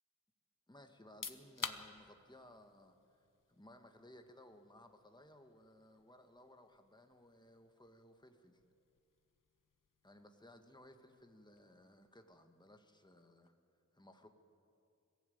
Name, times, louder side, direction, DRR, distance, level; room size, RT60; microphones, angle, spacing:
voice 1, 0.7-8.6 10.0-13.5 13.9-14.3, left 1 dB, 15° left, 5 dB, 1.5 m, -60 dB
sound 1, 1.0-13.6, left 5 dB, 85° left, 1.1 m, -54 dB
22.5 x 15.0 x 9.3 m, 2.5 s
wide cardioid pair, 55°, 31 cm